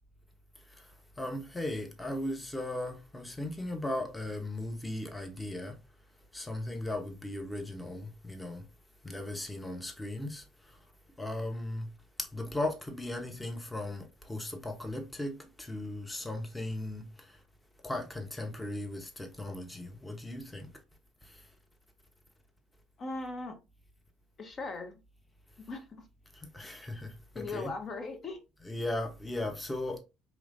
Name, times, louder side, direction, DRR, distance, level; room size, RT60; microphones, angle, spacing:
voice 1, 1.2-5.8 6.3-8.6 9.0-10.8 11.2-11.9 12.2-17.4 17.8-20.7 21.2-21.4 26.3-27.7 28.6-30.0, left 1 dB, 15° left, 1.0 m, -37 dB
voice 2, 23.0-23.6 24.4-25.0 25.7-25.9 27.3-28.4, left 3 dB, 45° left, 1.0 m, -38 dB
4.7 x 3.2 x 2.6 m
hypercardioid pair, 60°, 0 cm